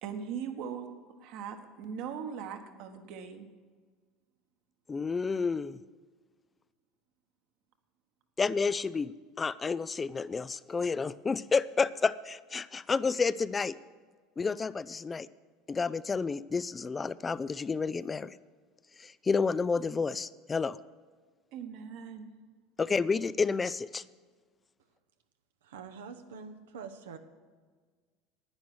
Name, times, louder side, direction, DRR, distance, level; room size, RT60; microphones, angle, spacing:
voice 1, 0.0-3.5 21.5-22.3, right 7 dB, 65° right, 6 dB, 1.3 m, -40 dB
voice 2, 4.9-5.8 8.4-9.1 9.4-13.7 14.4-15.3 15.7-18.4 19.0-20.8 22.8-24.0, left 4 dB, 25° left, 17 dB, 0.3 m, -30 dB
voice 3, 25.6-27.2, right 6 dB, 85° right, 7 dB, 0.8 m, -45 dB
10.5 x 9.3 x 6.2 m, 1.5 s
hypercardioid pair, 85°, 0 cm